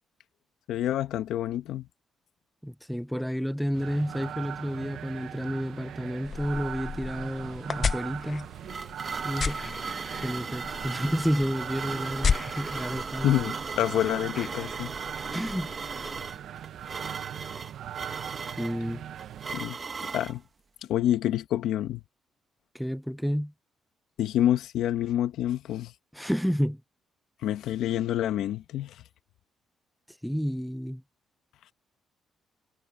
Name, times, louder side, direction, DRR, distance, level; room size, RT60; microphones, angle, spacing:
voice 1, 0.7-1.9 13.2-14.9 19.5-19.8 20.1-20.4 20.9-22.0 24.2-25.9 27.4-29.0, left 12 dB, 80° left, 1.3 m, -27 dB
voice 2, 2.6-8.5 9.2-9.8 10.2-13.3 15.3-15.7 18.6-19.1 22.7-23.5 26.1-26.8 30.2-31.0, equal, ahead, 0.6 m, -30 dB
sound 1, 3.7-19.6, right 10 dB, 70° right, 0.9 m, -40 dB
sound 2, 6.2-16.4, left 6 dB, 45° left, 1.0 m, -35 dB
sound 3, 8.2-20.4, right 4 dB, 35° right, 1.6 m, -37 dB
cardioid pair, 90°, 0 cm